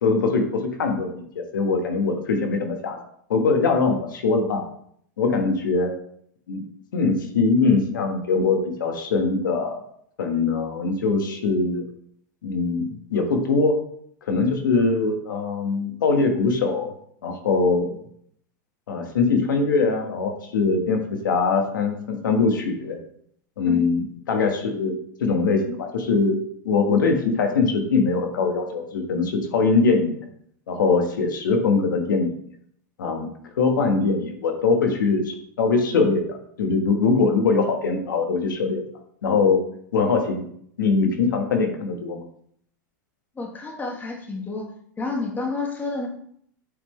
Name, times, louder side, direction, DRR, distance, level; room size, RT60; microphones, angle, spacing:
voice 1, 0.0-3.0 3.3-4.6 5.2-5.9 6.5-6.6 6.9-9.8 10.2-11.8 12.4-13.8 14.3-16.9 17.2-18.0 18.9-23.0 23.6-30.2 30.7-32.3 33.0-33.3 33.6-38.8 39.2-39.6 39.9-40.4 40.8-42.2, left 4 dB, 90° left, 4 dB, 1.3 m, -22 dB
voice 2, 43.3-44.7 45.0-46.1, left 3 dB, 15° left, 1 dB, 1.4 m, -30 dB
8.3 x 3.5 x 3.2 m, 0.67 s
hypercardioid pair, 125°, 10 cm